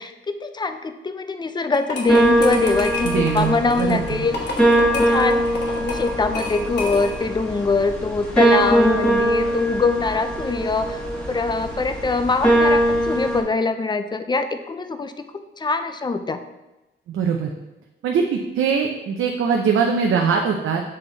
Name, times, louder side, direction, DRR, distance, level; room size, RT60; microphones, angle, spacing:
voice 1, 0.0-5.5 5.8-15.2 15.6-16.4, left 4 dB, 20° left, 9 dB, 0.4 m, -23 dB
sound 1, 1.7-7.3, left 3 dB, 60° left, 1.3 m, -31 dB
sound 2, 2.1-13.4, right 1 dB, 5° left, 1.2 m, -21 dB
voice 2, 3.0-4.3 17.1-17.5 18.0-20.8, right 6 dB, 85° right, 1 dB, 0.6 m, -22 dB
7.7 x 3.8 x 3.9 m, 1.0 s
wide cardioid pair, 135°, 20 cm